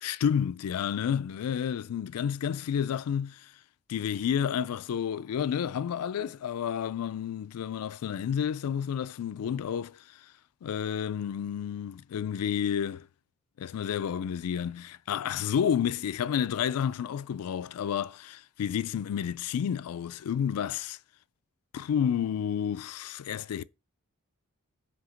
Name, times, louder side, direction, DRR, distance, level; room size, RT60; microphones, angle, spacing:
voice 1, 0.0-3.5 3.9-10.0 10.6-13.1 13.6-21.0 21.7-23.6, left 8 dB, 85° left, 0.3 m, -30 dB
7.8 x 2.9 x 5.0 m
head